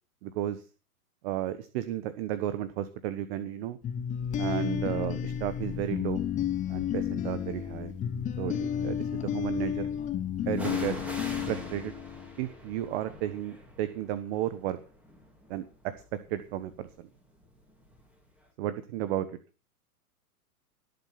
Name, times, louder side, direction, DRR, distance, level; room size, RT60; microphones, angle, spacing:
voice 1, 0.2-0.6 1.2-3.8 4.4-6.2 6.7-7.9 8.4-9.9 10.5-10.9 11.5-11.9 12.4-14.8 15.5-15.6 16.3-17.1 18.6-19.3, right 12 dB, 40° right, 13 dB, 1.3 m, -33 dB
sound 1, 3.8-12.6, left 9 dB, 15° left, 1.1 m, -32 dB
sound 2, 5.6-5.9 6.7-7.6 10.5-18.2 18.4-18.5, equal, 5° right, 3.5 m, -45 dB
18.5 x 7.9 x 5.8 m, 0.35 s
hypercardioid pair, 130°, 46 cm